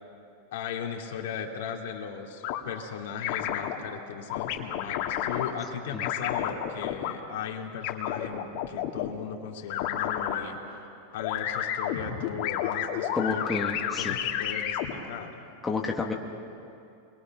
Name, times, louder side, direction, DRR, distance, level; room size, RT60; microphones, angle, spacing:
voice 1, 0.5-10.6 11.1-15.4, left 8 dB, 75° left, 1 dB, 2.7 m, -37 dB
sound 1, 2.4-2.6 3.2-3.8 4.3-5.5 6.0-7.1 7.8-9.1 9.7-10.4 11.2-14.9, left 10 dB, 55° left, 2.4 m, -30 dB
voice 2, 13.1-14.2 15.6-16.1, left 4 dB, 10° left, 0 dB, 1.7 m, -30 dB
28.0 x 23.0 x 6.1 m, 2.6 s
supercardioid pair, 140°, 0 cm